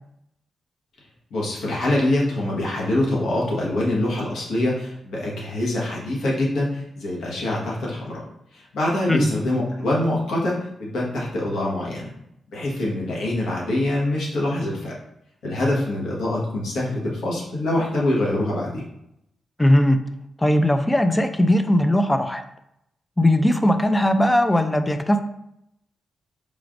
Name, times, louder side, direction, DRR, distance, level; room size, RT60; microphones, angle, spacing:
voice 1, 1.3-8.2 8.5-12.1 12.5-14.9 15.4-18.8, left 1 dB, 90° left, -4 dB, 1.3 m, -24 dB
voice 2, 19.6-20.0 20.4-22.4 23.2-25.2, left 1 dB, 10° left, 8 dB, 0.3 m, -18 dB
4.9 x 3.2 x 2.5 m, 0.79 s
wide cardioid pair, 125°, 0 cm